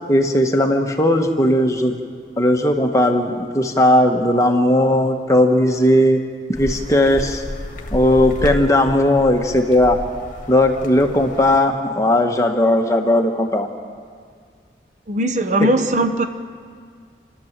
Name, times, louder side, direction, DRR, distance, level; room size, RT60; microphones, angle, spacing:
voice 1, 0.1-1.9 2.4-6.2 6.6-7.4 7.9-10.0 10.5-13.7, left 1 dB, 20° left, 3 dB, 1.4 m, -17 dB
sound 1, 6.5-11.6, left 1 dB, 45° left, 1.7 m, -31 dB
voice 2, 15.1-16.2, right 1 dB, 40° right, 7 dB, 0.9 m, -19 dB
28.5 x 12.5 x 7.5 m, 2.1 s
head